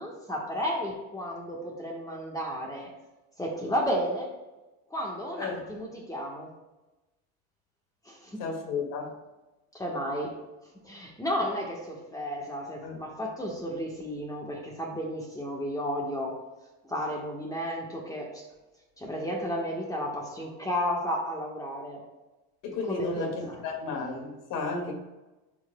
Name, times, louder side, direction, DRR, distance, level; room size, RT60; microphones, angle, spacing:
voice 1, 0.0-2.9 3.4-4.3 4.9-6.5 8.0-8.4 9.7-10.3 10.8-16.4 16.8-18.4 19.0-22.1 22.9-23.6, equal, 10° left, -1 dB, 1.3 m, -33 dB
voice 2, 8.4-9.1 12.8-13.0 22.6-24.9, left 4 dB, 60° left, 1 dB, 2.2 m, -33 dB
12.0 x 4.7 x 2.3 m, 1.1 s
supercardioid pair, 105°, 36 cm